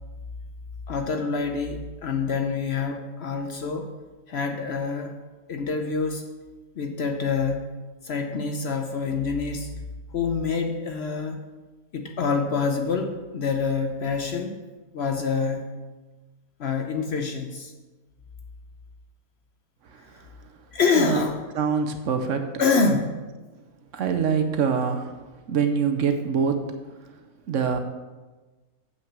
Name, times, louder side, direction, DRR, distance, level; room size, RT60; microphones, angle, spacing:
voice 1, 0.9-3.9 4.3-5.1 5.5-6.2 6.8-9.7 10.1-11.4 11.9-14.5 14.9-15.7 16.6-17.7 20.7-21.4 22.6-23.1, left 4 dB, 55° left, 5 dB, 0.8 m, -26 dB
voice 2, 19.9-20.3 20.9-21.2 21.5-22.6 23.9-26.7 27.5-27.8, right 6 dB, 65° right, 6 dB, 1.0 m, -25 dB
8.0 x 5.9 x 6.0 m, 1.2 s
omnidirectional pair, 1.5 m